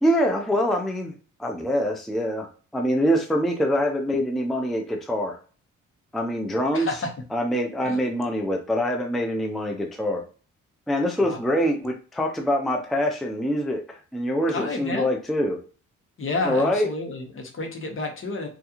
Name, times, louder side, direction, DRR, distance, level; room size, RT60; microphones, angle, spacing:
voice 1, 0.0-1.1 1.4-2.5 2.7-5.4 6.1-7.0 7.3-10.2 10.9-15.6 16.4-16.9, equal, ahead, 3 dB, 0.4 m, -24 dB
voice 2, 6.7-7.1 7.8-8.0 11.2-11.4 14.5-15.1 16.2-18.5, left 3 dB, 45° left, 3 dB, 1.0 m, -30 dB
3.4 x 2.4 x 2.8 m, 0.39 s
cardioid pair, 90°, 30 cm